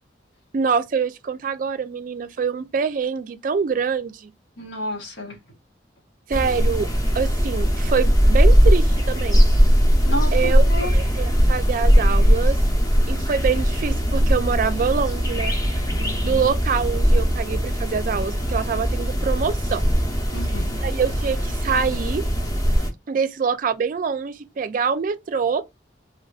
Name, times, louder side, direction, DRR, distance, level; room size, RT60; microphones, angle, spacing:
voice 1, 0.5-4.3 6.3-6.9 7.1-9.4 10.3-10.6 10.9-12.6 13.1-15.6 16.2-19.9 20.7-22.2 23.1-25.6, right 6 dB, 45° right, 0.3 m, -25 dB
voice 2, 4.6-5.4 10.0-10.9 16.0-16.5 20.3-20.8, left 1 dB, 85° left, 1.3 m, -31 dB
sound 1, 6.3-22.9, equal, 20° left, 0.7 m, -19 dB
3.4 x 2.5 x 2.3 m
head